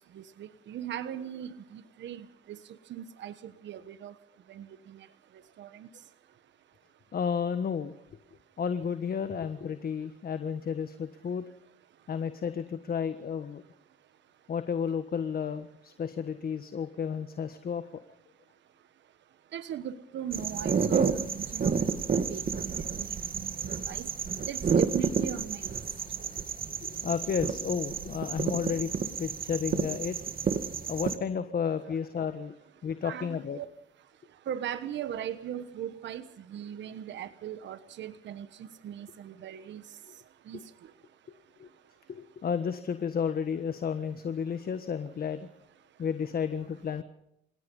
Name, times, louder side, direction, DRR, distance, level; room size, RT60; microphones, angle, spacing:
voice 1, 0.1-2.6 2.9-4.1 4.5-5.1 5.6-5.9 19.5-22.7 23.0-24.1 24.5-25.7 33.0-33.7 34.5-36.2 36.5-38.5 38.8-39.8 40.5-40.6, right 10 dB, 65° right, 12 dB, 1.3 m, -39 dB
voice 2, 7.1-7.9 8.6-11.4 12.1-13.6 14.5-17.8 26.8-30.2 30.9-32.5 32.8-33.6 41.6-41.7 42.1-45.5 46.0-47.0, left 7 dB, 50° left, 10 dB, 1.4 m, -32 dB
sound 1, 20.3-31.2, right 6 dB, 45° right, 2.1 m, -30 dB
29.5 x 17.5 x 5.5 m, 0.77 s
cardioid pair, 90°, 20 cm